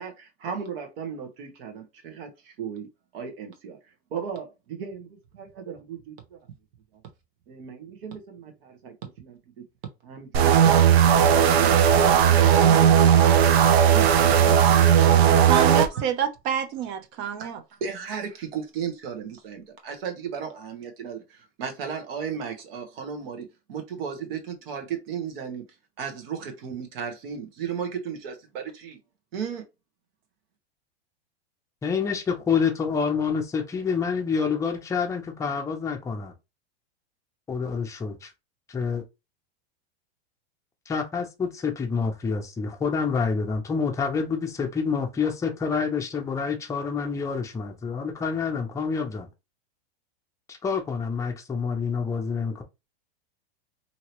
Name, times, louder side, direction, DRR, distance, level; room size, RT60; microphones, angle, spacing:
voice 1, 0.0-2.9 3.1-3.8 4.1-6.4 7.5-9.4 10.0-10.6 11.1-12.2 12.5-13.5 13.9-14.8 17.4-17.5 17.8-25.6 26.0-29.0 29.3-29.7, right 7 dB, 70° right, 1.2 m, -35 dB
sound 1, 10.3-15.9, right 8 dB, 85° right, 0.6 m, -17 dB
voice 2, 15.4-17.6, right 9 dB, 50° right, 0.7 m, -27 dB
voice 3, 31.8-36.3 37.5-38.3 38.7-39.0 40.9-49.3 50.5-52.6, left 5 dB, 10° left, 0.5 m, -27 dB
2.8 x 2.8 x 2.9 m
supercardioid pair, 140°, 31 cm